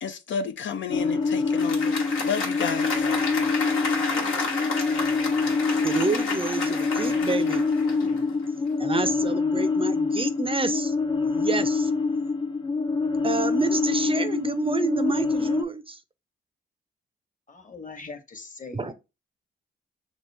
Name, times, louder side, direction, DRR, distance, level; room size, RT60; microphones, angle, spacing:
voice 1, 0.0-1.9 2.2-3.1, left 7 dB, 65° left, 0.5 m, -31 dB
sound 1, 0.9-15.6, left 4 dB, 20° left, 0.6 m, -26 dB
Applause, 1.4-8.4, left 4 dB, 85° left, 1.2 m, -31 dB
voice 2, 5.8-7.7 8.8-10.9 11.2-11.9 13.2-16.0 18.7-18.9, right 3 dB, 25° right, 0.5 m, -28 dB
voice 3, 17.5-18.9, left 4 dB, 40° left, 1.1 m, -41 dB
5.8 x 2.1 x 3.3 m
supercardioid pair, 50°, 21 cm